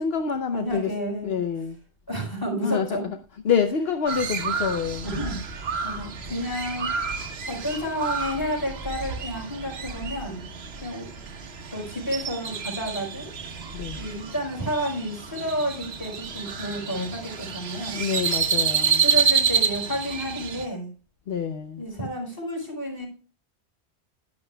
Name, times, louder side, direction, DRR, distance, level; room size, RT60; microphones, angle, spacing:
voice 1, 0.0-0.9 1.2-1.8 2.6-3.2 3.4-5.1 13.7-14.0 17.9-19.0 21.3-21.8, left 6 dB, 70° left, 1.0 m, -26 dB
voice 2, 0.5-1.4 2.1-3.1 5.0-6.9 7.5-10.4 10.8-11.1 11.7-13.3 14.0-18.0 18.9-20.9 21.8-23.1, equal, 20° left, 4.5 m, -31 dB
Crow, 4.1-20.6, right 6 dB, 70° right, 1.3 m, -29 dB
11.5 x 10.5 x 2.2 m
omnidirectional pair, 1.1 m